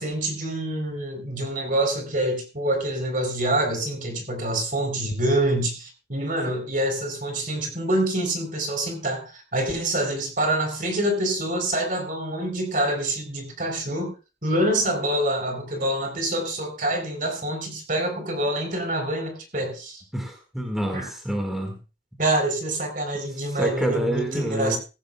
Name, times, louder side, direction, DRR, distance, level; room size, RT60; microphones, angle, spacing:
voice 1, 0.0-14.1 14.4-20.0 20.9-21.1 22.2-24.8, right 1 dB, 45° right, 5 dB, 3.9 m, -26 dB
voice 2, 20.1-21.8 23.6-24.8, equal, ahead, 3 dB, 1.9 m, -27 dB
16.0 x 15.5 x 2.3 m, 0.31 s
head